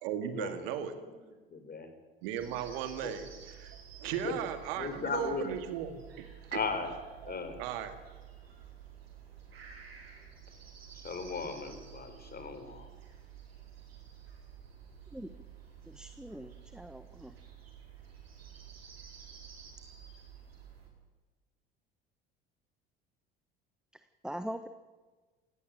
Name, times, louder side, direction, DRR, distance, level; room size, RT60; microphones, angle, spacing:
voice 1, 0.0-1.0 2.2-6.2 6.5-6.6 7.2-8.0, right 9 dB, 70° right, 9 dB, 2.1 m, -37 dB
voice 2, 1.5-1.9 3.0-3.1 4.1-4.3 4.7-5.5 6.5-6.9 7.2-7.6 11.0-12.9, left 4 dB, 30° left, 8 dB, 4.5 m, -37 dB
sound 1, 2.3-20.9, right 8 dB, 85° right, 5.0 m, -52 dB
voice 3, 15.9-17.3 24.2-24.7, equal, ahead, 10 dB, 1.2 m, -42 dB
18.0 x 17.0 x 9.2 m, 1.3 s
hypercardioid pair, 65°, 30 cm